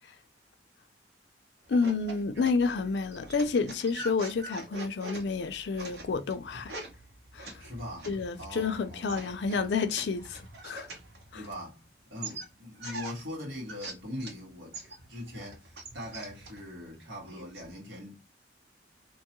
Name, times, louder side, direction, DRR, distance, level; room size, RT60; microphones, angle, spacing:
sound 1, 1.6-11.8 12.2-14.4 14.7-17.7, right 2 dB, 60° right, 0.9 m, -44 dB
voice 1, 1.7-6.7 7.3-7.5 8.1-10.9 11.3-11.4, left 4 dB, 60° left, 0.4 m, -30 dB
voice 2, 7.6-8.1 8.4-9.1 11.3-14.8 15.1-18.2, left 1 dB, 85° right, 1.5 m, -41 dB
2.9 x 2.3 x 2.9 m
head